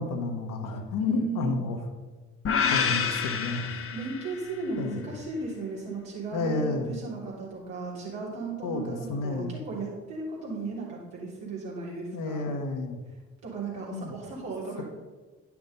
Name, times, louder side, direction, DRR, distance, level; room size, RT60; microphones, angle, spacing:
voice 1, 0.0-1.8 2.7-3.7 4.8-5.0 6.3-6.9 8.6-9.6 12.1-13.0 13.9-14.1, left 3 dB, 60° left, 5 dB, 1.3 m, -31 dB
voice 2, 1.0-1.7 3.9-12.5 13.4-14.8, right 3 dB, 70° right, -5 dB, 3.2 m, -35 dB
sound 1, 2.4-4.7, left 6 dB, 35° left, 1.0 m, -28 dB
10.5 x 6.0 x 5.3 m, 1.3 s
figure-of-eight pair, 40°, 37 cm